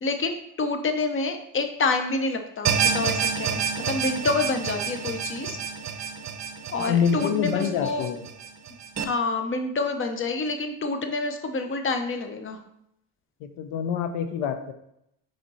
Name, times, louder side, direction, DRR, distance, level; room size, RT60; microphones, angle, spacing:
voice 1, 0.0-5.6 6.7-8.1 9.0-12.6, left 3 dB, 25° left, 6 dB, 0.8 m, -28 dB
sound 1, 2.6-9.0, right 6 dB, 35° right, 0.8 m, -29 dB
voice 2, 6.8-8.2 13.4-14.7, left 7 dB, 75° left, 8 dB, 0.8 m, -26 dB
5.2 x 4.5 x 4.1 m, 0.78 s
supercardioid pair, 85°, 47 cm